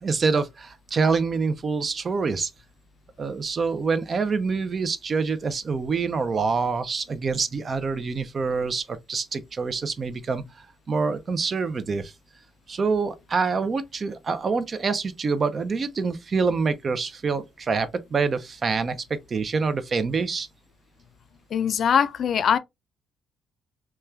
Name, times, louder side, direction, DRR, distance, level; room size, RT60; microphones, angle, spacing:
voice 1, 0.0-2.5 3.2-12.1 12.7-20.5, right 4 dB, 40° right, 0.4 m, -26 dB
voice 2, 21.5-22.6, left 8 dB, 60° left, 0.3 m, -21 dB
3.0 x 2.3 x 2.2 m
cardioid pair, 90°, 0 cm